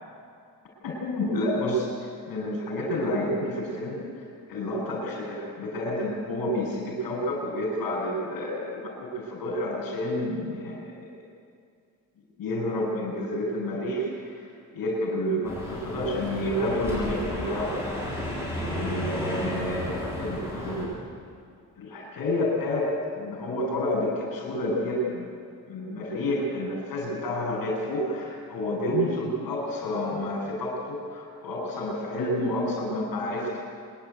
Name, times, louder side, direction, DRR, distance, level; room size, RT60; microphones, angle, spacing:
voice 1, 0.8-1.9 2.3-4.0 4.5-11.0 12.4-14.3 14.7-17.9 18.6-21.0 21.8-25.3 25.7-33.6, left 1 dB, 75° left, -7 dB, 7.1 m, -29 dB
sound 1, 15.4-20.8, equal, 10° right, 7.2 m, -32 dB
26.0 x 11.5 x 9.6 m, 2.3 s
wide cardioid pair, 150°, 35 cm